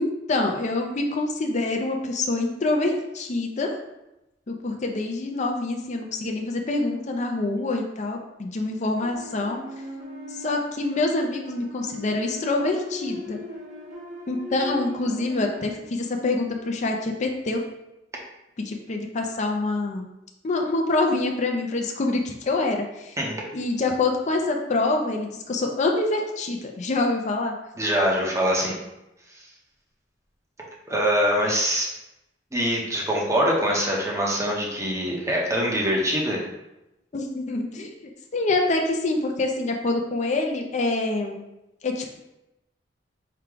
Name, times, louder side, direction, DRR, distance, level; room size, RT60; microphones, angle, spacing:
voice 1, 0.0-3.8 4.5-9.6 10.3-13.4 14.3-17.6 18.6-20.1 20.4-23.2 23.5-27.5 37.1-37.9 38.3-41.4 41.8-42.2, left 2 dB, 40° left, 2 dB, 0.5 m, -26 dB
sound 1, 9.0-15.8, left 1 dB, 45° right, 1.0 m, -39 dB
voice 2, 27.8-28.7 30.9-31.9 32.5-36.4, equal, 15° right, -2 dB, 0.8 m, -23 dB
4.6 x 2.2 x 3.7 m, 0.92 s
head